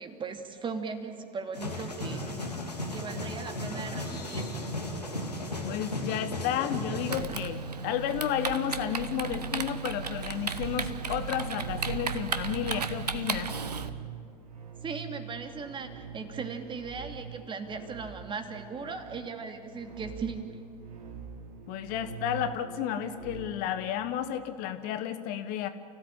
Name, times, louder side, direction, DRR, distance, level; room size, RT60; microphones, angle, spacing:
voice 1, 0.0-2.4 2.9-4.5 14.8-20.5, right 4 dB, 25° right, 6 dB, 2.6 m, -38 dB
sound 1, 1.5-7.2, left 1 dB, 85° left, 2.7 m, -35 dB
voice 2, 5.6-13.5 21.7-25.7, left 10 dB, 45° left, 10 dB, 1.3 m, -32 dB
Typing, 7.1-13.9, right 5 dB, 80° right, 1.1 m, -34 dB
sound 2, 9.1-23.9, right 7 dB, 60° right, 3.7 m, -44 dB
30.0 x 16.0 x 8.9 m, 2.4 s
figure-of-eight pair, 80°, 20 cm